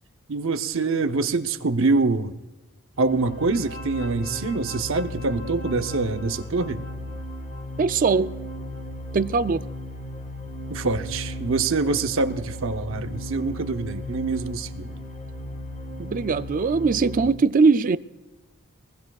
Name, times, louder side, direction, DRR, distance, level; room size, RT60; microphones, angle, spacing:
voice 1, 0.3-2.4 3.0-6.8 10.7-15.0, right 3 dB, 65° right, 0.8 m, -25 dB
sound 1, 2.9-17.3, left 1 dB, 40° left, 1.7 m, -36 dB
voice 2, 7.8-8.3 9.1-9.6 16.0-18.0, right 4 dB, 40° right, 0.4 m, -21 dB
24.0 x 20.0 x 2.4 m
head